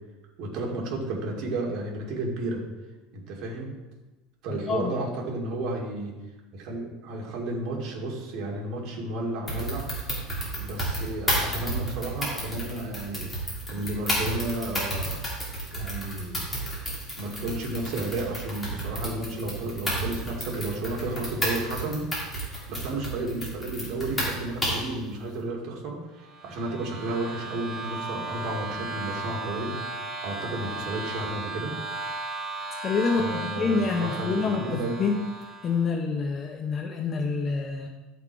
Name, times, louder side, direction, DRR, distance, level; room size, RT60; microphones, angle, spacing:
voice 1, 0.4-2.6 3.1-3.7 4.4-6.2 6.5-9.9 10.2-15.3 15.7-16.4 17.2-22.0 22.4-29.8 30.2-31.7 33.1-35.0, right 2 dB, 45° right, -1 dB, 2.2 m, -32 dB
voice 2, 4.5-4.9 32.8-35.3 35.6-37.9, left 4 dB, 25° left, 3 dB, 0.6 m, -27 dB
sound 1, 9.5-24.9, right 1 dB, 5° left, 2.5 m, -31 dB
sound 2, 26.2-35.9, right 3 dB, 25° right, 1.5 m, -36 dB
11.0 x 5.9 x 4.6 m, 1.1 s
cardioid pair, 175°, 0 cm